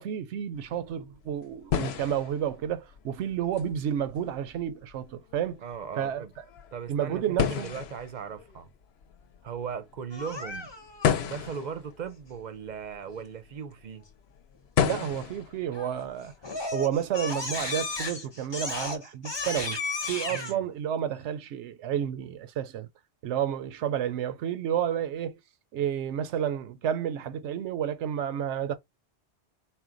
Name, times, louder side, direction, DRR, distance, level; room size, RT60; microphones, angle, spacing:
voice 1, 0.0-5.6 6.0-6.2 6.9-7.7 14.9-16.3 16.7-19.8 20.1-22.9 23.2-25.4 25.7-28.8, right 9 dB, 85° right, 0.9 m, -30 dB
sound 1, 0.6-17.5, left 8 dB, 70° left, 0.8 m, -34 dB
voice 2, 5.6-6.3 6.7-8.7 9.4-10.7 11.2-14.0 20.3-20.7, right 7 dB, 50° right, 0.6 m, -38 dB
Crying sobbing, 10.1-11.0 15.7-16.0 16.4-20.5, left 3 dB, 25° left, 0.7 m, -34 dB
4.3 x 2.1 x 3.8 m
omnidirectional pair, 1.2 m